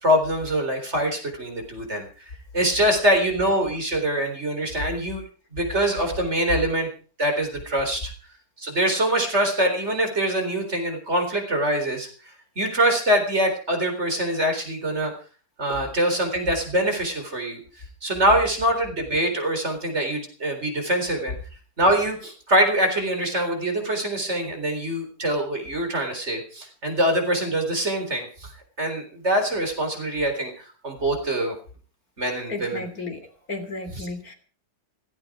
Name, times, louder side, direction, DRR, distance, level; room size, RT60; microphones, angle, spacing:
voice 1, 0.0-2.1 2.5-5.2 5.5-6.9 7.2-8.1 8.6-15.1 15.6-17.6 18.0-21.3 21.8-28.5 28.8-31.6 32.2-32.9 33.9-34.1, right 1 dB, 45° right, 5 dB, 4.4 m, -24 dB
voice 2, 32.5-34.3, left 3 dB, 65° left, 8 dB, 3.7 m, -34 dB
17.0 x 16.5 x 4.9 m, 0.40 s
omnidirectional pair, 1.7 m